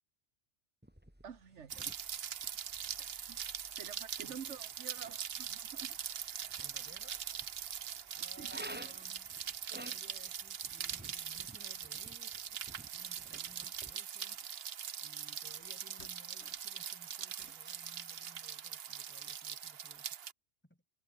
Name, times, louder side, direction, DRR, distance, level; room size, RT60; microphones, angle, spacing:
sound 1, 0.8-13.9, equal, 10° right, 3.2 m, -55 dB
voice 1, 1.2-2.0 3.0-3.4 3.8-6.0 8.4-8.5, right 7 dB, 80° right, 1.5 m, -49 dB
Rain, 1.7-20.3, right 9 dB, 60° right, 1.0 m, -42 dB
voice 2, 6.5-7.2 8.1-9.3 9.8-12.5 12.9-14.4 15.0-20.1 20.6-20.8, equal, 10° left, 2.5 m, -61 dB
sound 2, 13.4-14.6 15.5-15.7 16.0-16.7 17.1-18.1, left 4 dB, 70° left, 2.5 m, -63 dB
omnidirectional pair, 1.2 m